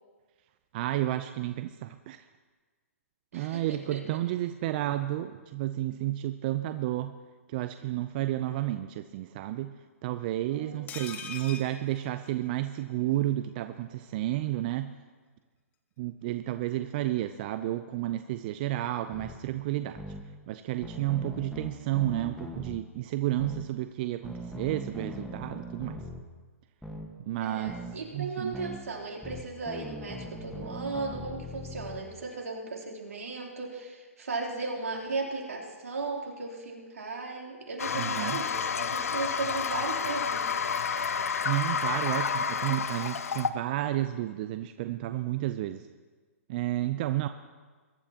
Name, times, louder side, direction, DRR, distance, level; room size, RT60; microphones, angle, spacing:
voice 1, 0.7-2.2 3.3-7.1 7.5-9.7 10.0-14.9 16.0-20.0 20.5-26.0 27.2-27.8 28.1-28.5 37.9-38.4 41.4-45.9 46.5-47.3, right 14 dB, 40° right, 10 dB, 0.5 m, -31 dB
voice 2, 3.3-4.0 10.5-10.8 27.4-40.6, right 3 dB, 80° right, -1 dB, 3.4 m, -36 dB
sound 1, 10.9-12.8 13.1-13.2 13.5-13.6, left 6 dB, 20° left, 1.2 m, -42 dB
sound 2, 19.1-19.4 20.0-20.2 20.8-22.8 23.4-23.6 24.2-26.2 26.8-27.1 27.7-27.9 28.5-28.8 29.2-32.0, equal, ahead, 1.4 m, -40 dB
Toilet flush, 37.8-43.5, left 6 dB, 75° left, 0.7 m, -30 dB
22.0 x 12.0 x 2.9 m, 1.4 s
hypercardioid pair, 135°, 8 cm